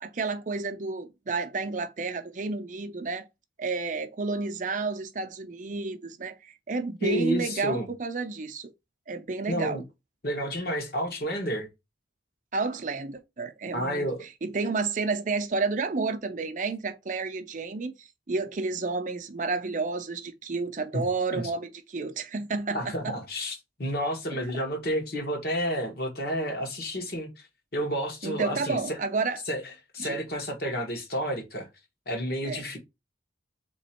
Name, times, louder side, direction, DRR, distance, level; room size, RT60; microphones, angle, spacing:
voice 1, 0.0-3.3 3.6-8.7 9.1-9.8 12.5-14.1 14.4-23.1 24.3-24.5 28.2-29.4 30.0-30.2 32.4-32.7, right 3 dB, 40° right, 0.5 m, -31 dB
voice 2, 7.0-7.9 9.5-9.8 10.2-11.7 13.7-14.3 20.9-21.0 21.3-21.5 22.7-27.3 27.7-29.0 29.5-29.6 29.9-31.7 32.1-32.8, equal, 55° left, 1.3 m, -30 dB
3.8 x 3.0 x 4.3 m
head